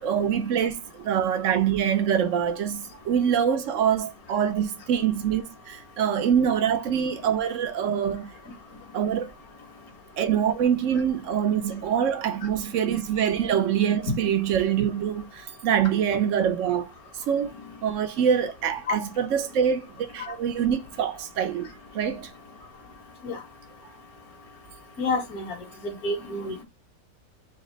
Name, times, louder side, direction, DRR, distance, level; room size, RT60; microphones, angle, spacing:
voice 1, 0.0-8.3 8.9-9.3 10.2-16.9 17.3-17.5 17.8-21.7 21.9-22.3, right 8 dB, 55° right, 1.0 m, -25 dB
voice 2, 17.4-17.7 20.2-20.3 23.2-23.4 25.0-25.6 25.8-26.6, left 2 dB, 60° left, 1.9 m, -30 dB
4.2 x 2.9 x 4.0 m
omnidirectional pair, 1.8 m